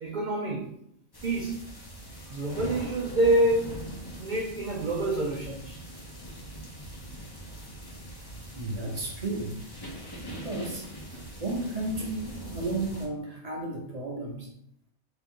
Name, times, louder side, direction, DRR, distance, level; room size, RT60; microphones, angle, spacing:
voice 1, 0.0-0.7 1.2-1.6 2.3-3.7 4.2-5.8, right 1 dB, 75° right, -1 dB, 0.4 m, -27 dB
sound 1, 1.1-13.1, right 1 dB, 25° left, 0.6 m, -42 dB
voice 2, 8.5-9.6 10.3-10.9 11.1-14.5, right 2 dB, 35° right, -1 dB, 0.7 m, -33 dB
3.6 x 2.9 x 3.6 m, 0.72 s
omnidirectional pair, 1.5 m